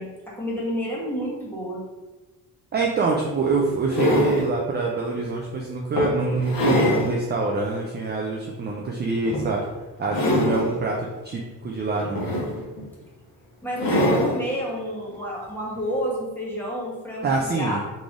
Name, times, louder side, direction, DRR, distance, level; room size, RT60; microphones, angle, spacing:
voice 1, 0.0-1.8 13.6-17.3 17.5-17.8, equal, 5° left, -6 dB, 1.4 m, -30 dB
sound 1, 2.7-2.8 3.5-4.5 5.2-5.3 6.0-7.1 7.6-7.7 9.3-9.6 10.0-10.8 11.9-12.8 13.8-14.4 15.7-15.8, left 1 dB, 65° left, 1.3 m, -23 dB
voice 2, 2.7-9.6 10.0-12.3 17.2-17.8, right 3 dB, 30° right, -2 dB, 0.5 m, -25 dB
3.9 x 3.3 x 3.6 m, 1.2 s
cardioid pair, 140°, 37 cm